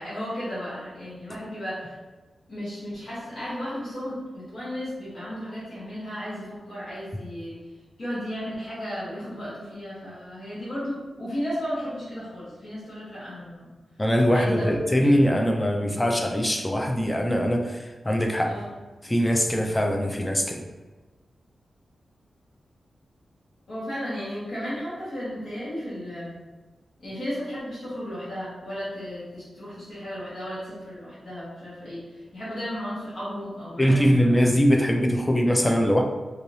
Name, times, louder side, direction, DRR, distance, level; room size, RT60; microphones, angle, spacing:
voice 1, 0.0-1.9 2.5-7.6 8.0-13.7 14.2-14.7 15.0-15.2 18.4-18.7 23.7-26.3 27.0-32.0 32.3-34.4, equal, 60° left, -11 dB, 1.2 m, -34 dB
voice 2, 14.0-18.5 19.0-20.6 33.8-36.0, equal, 10° left, 3 dB, 0.3 m, -22 dB
3.1 x 2.7 x 2.6 m, 1.2 s
wide cardioid pair, 140°, 0 cm